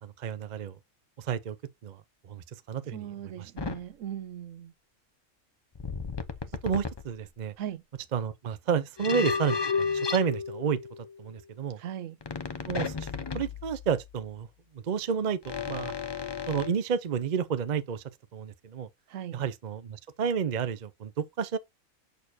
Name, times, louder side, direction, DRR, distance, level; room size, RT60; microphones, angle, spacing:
voice 1, 0.0-0.8 1.2-1.6 1.8-3.0 3.4-3.5 6.6-7.5 8.1-10.8 11.2-11.8 12.7-13.1 13.3-14.5 14.8-16.0 16.5-18.0 18.3-18.9 19.3-21.6, right 7 dB, 45° right, 0.6 m, -31 dB
voice 2, 2.8-4.7 6.4-6.5 7.6-7.8 11.8-12.2 19.1-19.4, right 10 dB, 80° right, 1.0 m, -39 dB
sound 1, 3.6-3.8 5.8-7.1 9.0-11.2 12.2-14.2 15.4-16.7, left 5 dB, 30° left, 0.5 m, -33 dB
6.6 x 6.5 x 2.7 m
omnidirectional pair, 1.3 m